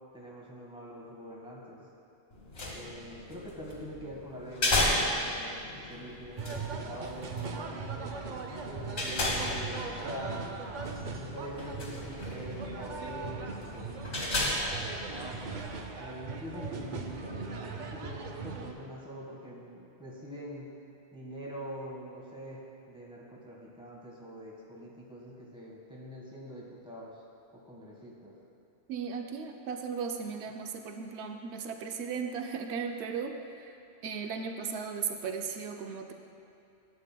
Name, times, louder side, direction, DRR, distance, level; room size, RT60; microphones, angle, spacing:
voice 1, 0.1-1.9 2.7-8.1 8.6-10.7 11.1-15.5 15.9-20.7 21.1-27.2 27.5-28.3, equal, 5° right, -4 dB, 1.4 m, -44 dB
sound 1, 2.3-15.8, left 1 dB, 80° left, 1.7 m, -35 dB
sound 2, 6.4-18.7, right 4 dB, 55° right, 0.6 m, -39 dB
voice 2, 28.9-33.7 34.0-36.1, right 6 dB, 85° right, 4 dB, 0.9 m, -36 dB
12.5 x 7.8 x 2.2 m, 2.7 s
omnidirectional pair, 1.1 m